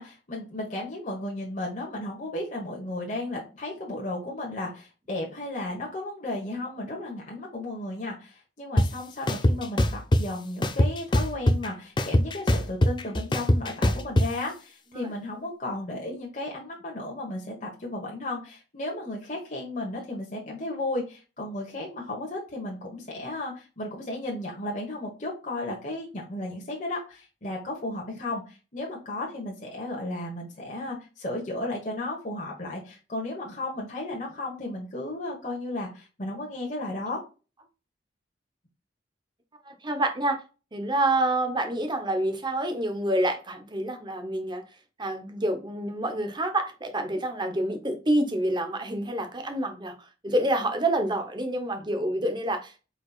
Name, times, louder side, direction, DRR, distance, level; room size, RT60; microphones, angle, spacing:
voice 1, 0.0-37.2, left 1 dB, 45° left, 1.3 m, -34 dB
sound 1, 8.8-8.9 9.3-10.2 10.6-11.7 12.0-14.3, left 1 dB, 25° left, 0.5 m, -21 dB
voice 2, 39.7-40.4 40.7-44.6 45.0-52.7, right 1 dB, 25° right, 0.9 m, -27 dB
4.8 x 4.2 x 2.4 m
head